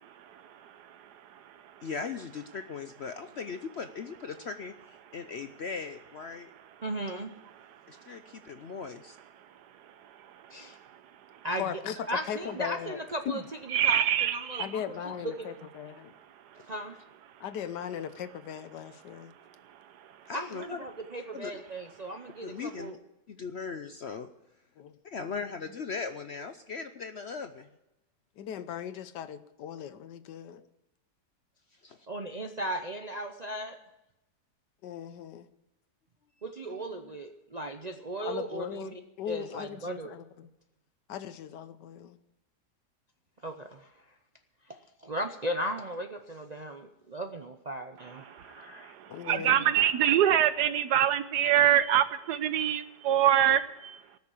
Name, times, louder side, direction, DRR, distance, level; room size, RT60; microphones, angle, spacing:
voice 1, 1.8-6.5 7.9-9.2 16.5-16.7 20.3-20.8 21.3-21.6 22.4-23.0 23.3-24.3 25.1-27.7 31.8-32.1 36.7-37.1, left 5 dB, 60° left, 8 dB, 0.7 m, -39 dB
voice 2, 6.8-7.3 10.5-10.8 11.4-11.8 12.1-14.9 15.2-15.5 16.7-17.0 20.3-23.0 32.1-33.8 36.4-38.9 39.3-40.2 43.4-43.9 44.7-48.9, right 1 dB, 45° right, 5 dB, 0.5 m, -37 dB
voice 3, 11.6-12.0 12.3-13.0 13.3-13.4 14.6-16.1 17.4-19.3 24.8-24.9 28.4-30.6 34.8-35.5 38.2-40.5 41.1-42.2 49.1-49.7, left 9 dB, 80° left, 12 dB, 1.4 m, -38 dB
voice 4, 13.7-14.7 48.3-54.0, right 10 dB, 75° right, 13 dB, 1.3 m, -25 dB
19.0 x 6.6 x 8.3 m, 0.92 s
omnidirectional pair, 1.8 m